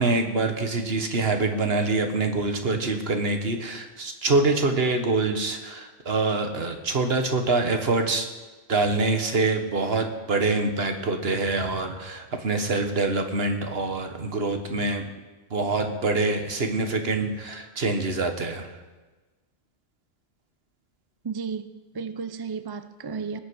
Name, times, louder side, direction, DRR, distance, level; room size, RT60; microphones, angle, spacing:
voice 1, 0.0-8.3 8.7-15.1 15.5-18.7, right 3 dB, 55° right, 6 dB, 1.6 m, -25 dB
voice 2, 21.2-23.4, right 5 dB, 30° right, 11 dB, 0.4 m, -33 dB
19.5 x 8.3 x 6.3 m, 1.2 s
omnidirectional pair, 1.2 m